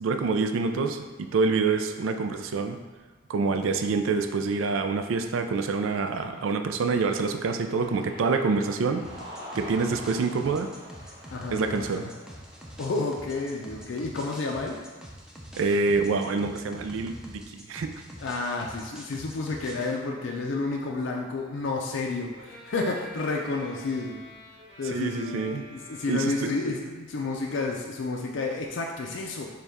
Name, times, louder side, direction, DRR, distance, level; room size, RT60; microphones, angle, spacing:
voice 1, 0.0-2.8 3.3-9.1 9.5-10.7 11.5-12.1 15.5-17.9 24.8-25.6 26.1-26.5, right 4 dB, 85° right, 7 dB, 0.4 m, -26 dB
Cheering, 5.9-15.0, equal, 25° right, 0.9 m, -47 dB
sound 1, 9.0-20.0, equal, 5° right, 0.5 m, -45 dB
voice 2, 11.3-12.0 12.8-14.8 18.2-24.2 24.8-29.6, left 3 dB, 65° left, 0 dB, 0.4 m, -31 dB
Bowed string instrument, 22.4-26.8, left 1 dB, 60° right, 1.4 m, -47 dB
6.6 x 2.3 x 3.5 m, 1.3 s
head